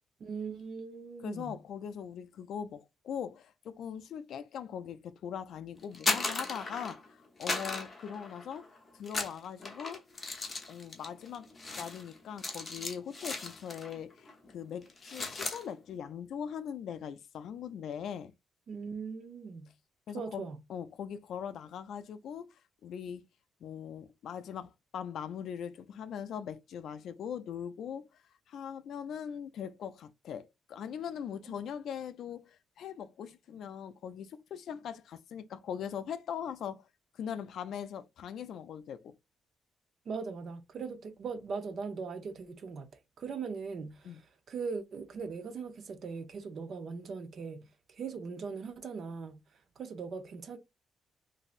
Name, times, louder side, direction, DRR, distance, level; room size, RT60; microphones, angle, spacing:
voice 1, 0.2-1.6 18.7-19.7 20.1-20.6 31.5-31.6 40.1-42.9 43.2-49.4 49.8-50.6, right 5 dB, 45° right, 0.5 m, -40 dB
voice 2, 1.2-10.0 10.7-18.3 20.1-20.4 20.7-22.5 22.8-23.2 23.6-28.2 28.5-36.9 37.1-39.1 44.0-44.2, left 8 dB, 65° left, 0.3 m, -41 dB
sound 1, 5.8-7.1 7.4-8.7 9.0-14.0 14.3-14.5 14.8-15.6, left 3 dB, 25° left, 0.8 m, -36 dB
3.1 x 2.6 x 2.4 m
cardioid pair, 150°, 0 cm